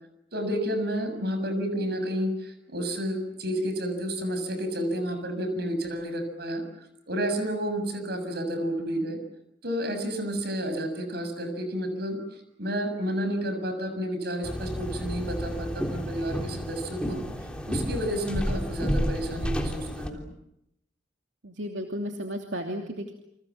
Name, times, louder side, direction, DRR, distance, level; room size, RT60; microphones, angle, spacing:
voice 1, 0.3-6.6 7.1-9.2 9.6-12.2 12.6-17.2 17.7-20.3, equal, 55° right, 8 dB, 7.3 m, -30 dB
sound 1, 14.4-20.1, equal, 5° left, 3.4 m, -31 dB
voice 2, 21.4-23.1, equal, 80° right, 3 dB, 2.9 m, -34 dB
29.5 x 26.0 x 7.4 m, 0.78 s
head